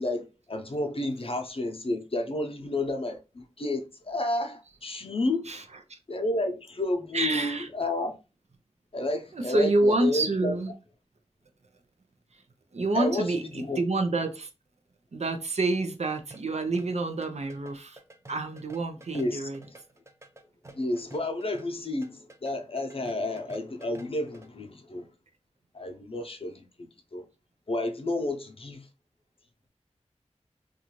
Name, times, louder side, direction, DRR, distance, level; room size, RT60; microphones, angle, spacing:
voice 1, 0.0-5.5 6.1-8.2 8.9-10.5 12.9-13.8 19.1-19.4 19.7-19.8 20.7-25.1 25.7-27.3 27.7-28.9, left 2 dB, 55° left, 0.6 m, -31 dB
voice 2, 7.1-7.7 9.3-10.7 12.3-12.4 12.7-14.5 15.1-18.0 18.3-19.7, right 2 dB, 70° right, 0.6 m, -28 dB
sound 1, 16.2-24.5, right 2 dB, 25° right, 0.5 m, -51 dB
2.6 x 2.3 x 2.9 m
wide cardioid pair, 45°, 12 cm